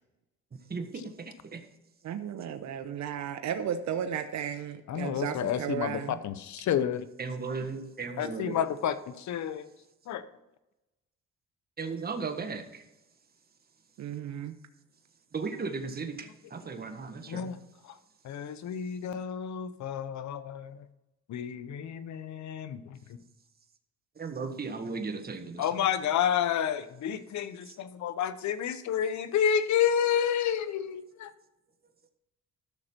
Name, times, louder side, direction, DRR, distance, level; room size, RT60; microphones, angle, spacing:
voice 1, 0.5-1.6 7.2-8.6 11.8-12.9 15.3-17.5 24.1-25.9 27.6-27.8, right 4 dB, 30° right, 5 dB, 1.5 m, -36 dB
voice 2, 2.0-6.2 14.0-14.5, right 8 dB, 65° right, 8 dB, 0.9 m, -34 dB
voice 3, 4.9-7.1 8.2-9.7 10.1-10.2 17.3-17.6 18.2-20.8 21.3-22.8 25.6-31.3, left 9 dB, 70° left, 12 dB, 0.9 m, -30 dB
13.0 x 6.5 x 4.5 m, 0.95 s
cardioid pair, 90°, 30 cm